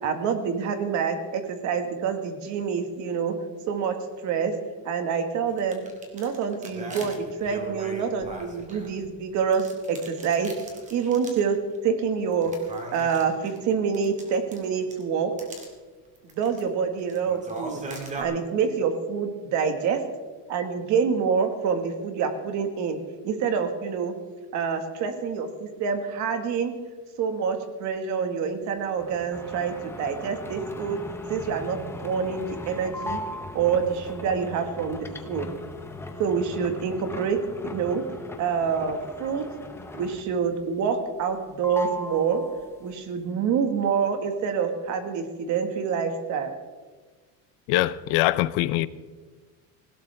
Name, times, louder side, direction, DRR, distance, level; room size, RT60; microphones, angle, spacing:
voice 1, 0.0-3.4 3.7-4.5 4.9-5.8 6.1-10.5 10.9-12.6 12.9-15.3 16.4-17.8 18.2-20.0 20.5-23.0 23.2-24.1 24.5-26.8 27.2-31.0 31.3-33.2 33.5-35.5 36.2-38.0 38.4-39.5 39.9-42.4 42.8-46.5, right 6 dB, 45° right, 1.8 m, -27 dB
sound 1, 5.5-9.1 9.5-11.5 11.7-11.8 12.3-15.0 15.4-15.7 16.1-16.6 17.0-18.2, right 2 dB, 20° right, 2.2 m, -40 dB
sound 2, 29.0-40.5 40.8-41.4 41.6-42.9, left 2 dB, 5° left, 0.7 m, -38 dB
voice 2, 47.7-48.9, left 16 dB, 75° left, 0.7 m, -23 dB
19.0 x 16.5 x 3.5 m
cardioid pair, 175°, 39 cm